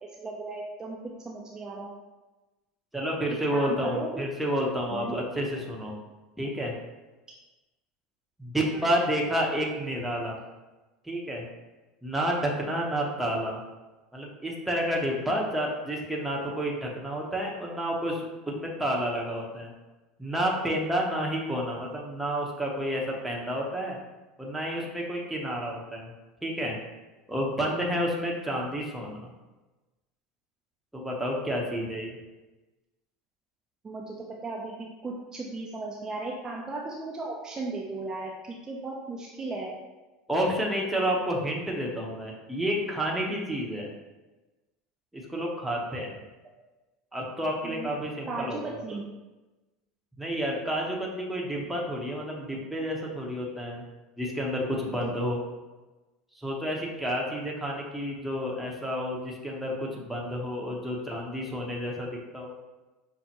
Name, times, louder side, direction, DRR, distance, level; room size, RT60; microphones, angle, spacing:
voice 1, 0.0-1.0 1.2-1.9 3.5-4.2 4.9-5.2 8.7-8.8 33.8-39.8 47.6-47.9 48.2-49.1 54.9-55.1, right 3 dB, 25° right, -3 dB, 0.5 m, -36 dB
voice 2, 2.9-5.9 6.4-6.7 8.4-10.4 11.0-11.5 12.0-13.6 14.1-19.7 20.2-24.0 24.4-26.1 26.4-26.8 27.3-29.3 30.9-32.2 40.3-43.9 45.1-46.2 47.1-48.6 50.2-53.8 54.2-55.4 56.3-62.1 62.3-62.5, equal, 5° right, -2 dB, 0.9 m, -30 dB
5.5 x 2.1 x 2.9 m, 1.1 s
hypercardioid pair, 90°, 3 cm